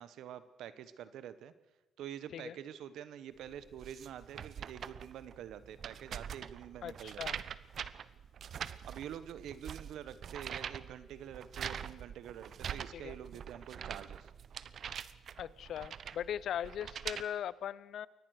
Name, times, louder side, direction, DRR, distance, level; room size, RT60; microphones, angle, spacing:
voice 1, 0.0-1.5 2.0-7.4 8.9-14.3, right 10 dB, 80° right, 14 dB, 1.2 m, -47 dB
sound 1, 3.5-17.2, right 8 dB, 60° right, 0.9 m, -44 dB
voice 2, 6.8-7.4 12.9-13.1 15.4-18.1, left 10 dB, 70° left, 20 dB, 0.7 m, -39 dB
23.5 x 18.5 x 6.6 m, 1.1 s
cardioid pair, 90°, 0 cm